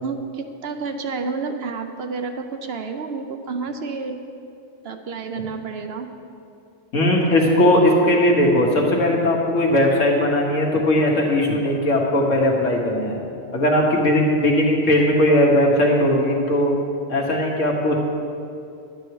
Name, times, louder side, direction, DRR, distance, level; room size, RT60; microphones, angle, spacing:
voice 1, 0.0-4.2 4.8-6.1, right 4 dB, 60° right, 6 dB, 0.8 m, -30 dB
voice 2, 6.9-13.2 13.5-16.7 17.1-18.0, left 1 dB, 80° left, -1 dB, 1.9 m, -18 dB
11.0 x 9.2 x 4.7 m, 2.6 s
omnidirectional pair, 1.3 m